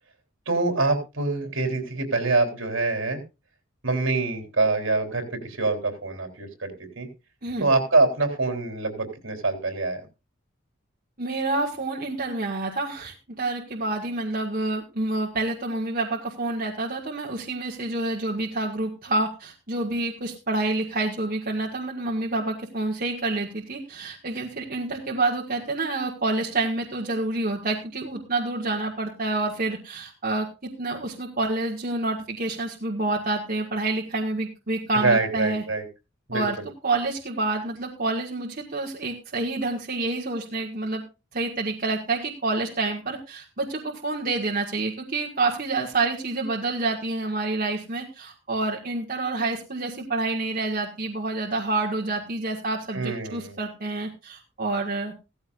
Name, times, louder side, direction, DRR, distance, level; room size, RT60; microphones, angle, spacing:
voice 1, 0.5-3.2 3.8-7.1 7.6-10.0 34.9-35.8 36.3-36.6 52.9-53.6, right 3 dB, 65° right, 5 dB, 3.7 m, -25 dB
voice 2, 11.2-35.6 36.3-36.6 36.8-41.0 41.3-55.1, right 2 dB, 45° right, -1 dB, 1.9 m, -28 dB
16.0 x 14.5 x 2.5 m, 0.29 s
head